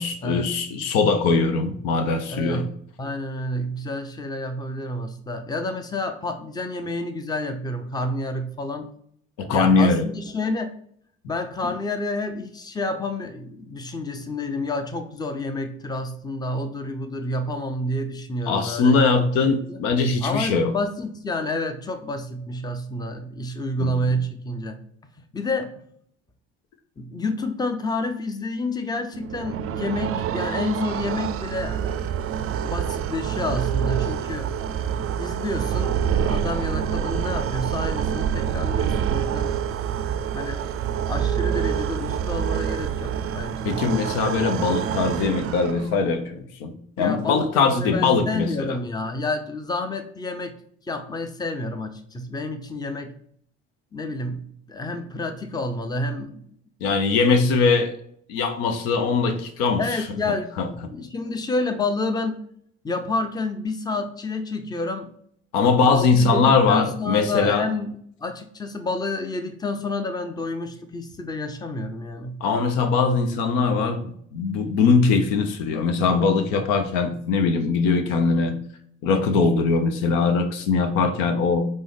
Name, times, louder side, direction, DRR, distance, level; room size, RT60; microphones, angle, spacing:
voice 1, 0.0-2.6 9.4-10.0 11.6-11.7 18.5-20.7 23.8-24.1 43.6-48.8 56.8-57.9 58.3-59.8 60.6-60.7 65.5-67.6 72.4-78.6 79.0-81.7, left 4 dB, 75° left, 7 dB, 0.6 m, -21 dB
voice 2, 2.3-2.7 3.0-8.9 9.5-10.7 11.3-19.3 19.7-19.8 20.2-24.8 25.3-25.7 27.0-32.0 32.6-39.5 40.3-40.7 41.1-43.7 47.0-50.5 50.8-53.1 53.9-54.4 54.7-56.4 57.1-57.2 59.8-62.4 62.8-65.1 65.8-67.9 68.2-72.4, left 2 dB, 10° left, 7 dB, 0.6 m, -29 dB
sound 1, 29.1-46.1, right 8 dB, 45° right, 0.4 m, -26 dB
5.2 x 2.1 x 3.4 m, 0.64 s
hypercardioid pair, 55°, 33 cm